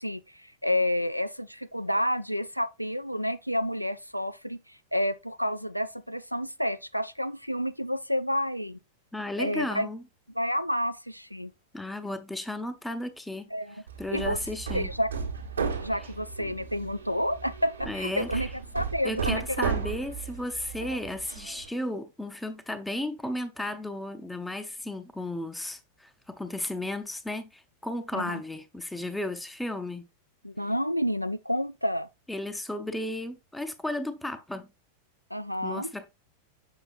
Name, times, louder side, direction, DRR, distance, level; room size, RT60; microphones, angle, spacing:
voice 1, 0.0-8.8 9.4-9.9 10.3-11.5 13.5-13.8 14.1-14.4 14.7-15.1 15.8-18.5 18.7-19.7 20.9-21.0 28.1-28.4 30.4-32.1 35.3-35.9, equal, 90° left, 0.3 m, -30 dB
voice 2, 9.1-10.0 11.7-14.9 17.9-18.5 19.0-30.1 32.3-34.6 35.6-36.1, left 1 dB, 5° left, 0.5 m, -34 dB
Hammer, 13.9-21.7, right 6 dB, 75° right, 1.0 m, -35 dB
6.5 x 5.9 x 2.5 m
figure-of-eight pair, 90°, 0 cm